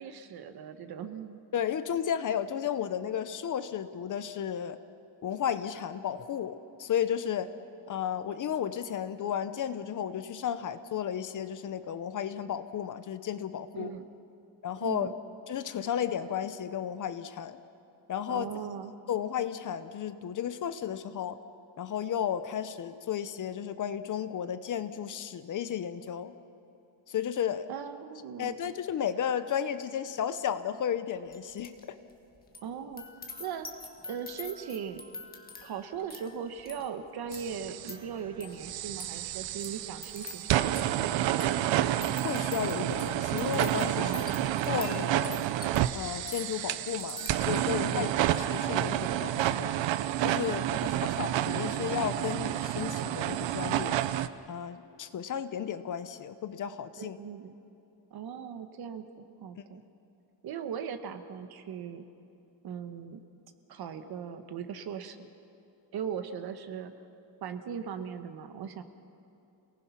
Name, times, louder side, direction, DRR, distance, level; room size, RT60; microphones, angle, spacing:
voice 1, 0.0-1.4 13.7-14.0 14.8-15.1 18.3-18.9 27.7-28.7 32.6-33.1 33.4-33.7 34.1-35.0 35.6-41.0 43.9-44.4 47.8-48.2 50.5-51.0 57.0-57.5 58.1-59.8 60.4-62.0 62.6-63.2 63.7-65.3 65.9-66.9 67.4-68.8, right 7 dB, 55° right, 9 dB, 1.3 m, -39 dB
voice 2, 1.5-4.8 5.2-7.5 7.9-13.9 14.6-15.1 15.5-17.6 18.1-18.5 19.1-21.4 21.8-26.3 27.1-27.7 28.4-32.0 42.2-44.3 44.7-45.5 45.9-48.1 48.5-49.7 50.2-50.8 51.2-54.0 54.5-57.2 59.6-59.7, left 9 dB, 40° left, 12 dB, 0.7 m, -33 dB
sound 1, 31.3-31.8 32.1-47.9 48.3-48.6, left 3 dB, 20° left, 1.5 m, -47 dB
sound 2, 37.3-37.9 38.6-54.3, right 12 dB, 70° right, 0.8 m, -30 dB
28.0 x 19.0 x 5.8 m, 2.7 s
cardioid pair, 175°, 47 cm